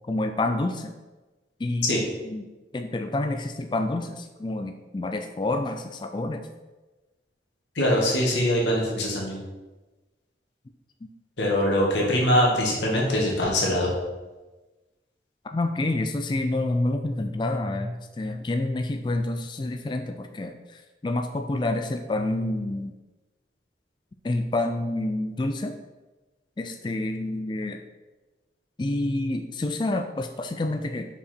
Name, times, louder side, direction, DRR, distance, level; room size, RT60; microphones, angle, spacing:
voice 1, 0.1-0.9 1.6-2.4 2.7-6.4 15.4-22.9 24.2-25.7 26.6-27.8 28.8-31.1, left 2 dB, 25° left, 6 dB, 0.3 m, -28 dB
voice 2, 7.7-9.4 11.4-13.9, equal, 85° left, -2 dB, 1.6 m, -23 dB
5.5 x 4.8 x 4.3 m, 1.2 s
head